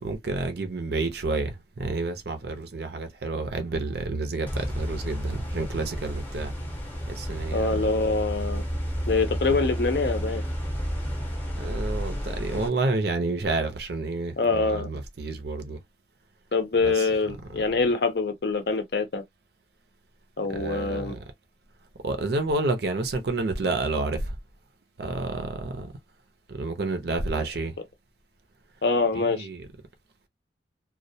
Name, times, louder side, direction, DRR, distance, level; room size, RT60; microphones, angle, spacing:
voice 1, 0.0-6.5 7.1-8.0 11.6-15.8 16.8-17.1 20.5-21.2 22.0-24.4 25.0-25.9 26.5-27.8 29.1-29.7, right 2 dB, 55° right, 0.5 m, -29 dB
sound 1, 4.5-12.7, equal, 10° left, 0.7 m, -31 dB
voice 2, 7.5-8.6 9.1-10.4 14.4-14.9 16.5-19.2 20.4-21.2 28.8-29.5, left 3 dB, 55° left, 0.5 m, -25 dB
2.2 x 2.1 x 2.7 m
head